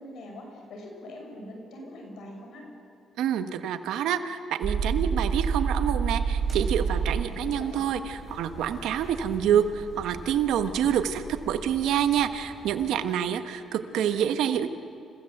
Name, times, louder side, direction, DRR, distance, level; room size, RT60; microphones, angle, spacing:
voice 1, 0.0-2.7 7.1-7.8, left 1 dB, 75° left, 2 dB, 6.1 m, -43 dB
voice 2, 3.2-14.7, right 9 dB, 85° right, 9 dB, 1.3 m, -27 dB
sound 1, 4.6-7.2, right 6 dB, 50° right, 1.7 m, -26 dB
sound 2, 6.2-13.0, equal, 15° right, 6.5 m, -44 dB
29.0 x 16.0 x 8.0 m, 2.6 s
cardioid pair, 90°, 0 cm